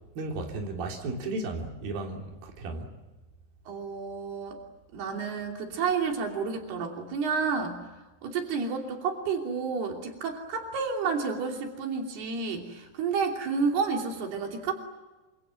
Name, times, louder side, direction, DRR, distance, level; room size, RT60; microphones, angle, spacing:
voice 1, 0.1-2.9, right 2 dB, 70° right, 5.0 m, -34 dB
voice 2, 3.7-4.6 4.9-7.8 8.2-14.7, right 5 dB, 85° right, 4.9 m, -30 dB
27.5 x 27.0 x 7.6 m
omnidirectional pair, 4.4 m